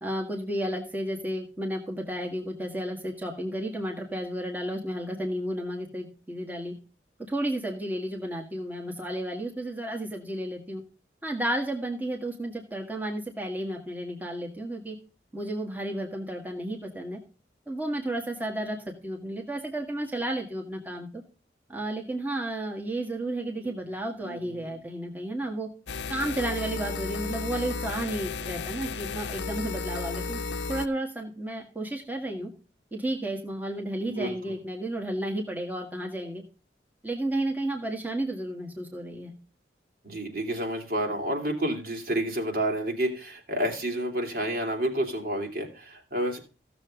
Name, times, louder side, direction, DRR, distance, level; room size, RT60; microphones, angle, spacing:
voice 1, 0.0-6.7 7.3-10.8 11.2-15.0 15.3-17.2 17.7-18.8 19.0-21.2 21.7-25.7 26.1-30.4 30.7-32.5 32.9-36.4 37.0-39.3, right 1 dB, 10° right, 0 dB, 1.8 m, -32 dB
voice 2, 24.2-24.8 34.1-34.3 40.0-46.4, right 1 dB, 55° right, 2 dB, 3.1 m, -30 dB
sound 1, 25.9-30.9, left 4 dB, 85° left, 0.7 m, -33 dB
16.0 x 7.0 x 3.8 m, 0.35 s
head